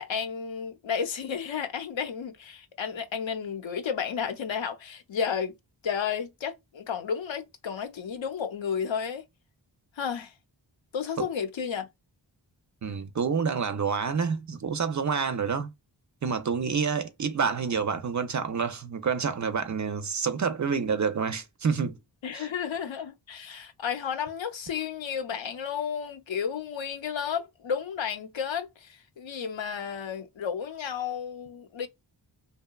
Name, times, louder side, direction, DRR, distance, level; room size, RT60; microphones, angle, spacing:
voice 1, 0.0-5.5 5.8-9.2 10.0-10.3 10.9-11.9 22.2-31.9, left 7 dB, 80° left, 0.7 m, -32 dB
voice 2, 12.8-15.7 16.2-22.0 22.3-22.5, right 6 dB, 40° right, 0.4 m, -28 dB
2.9 x 2.1 x 2.2 m
wide cardioid pair, 105°, 45 cm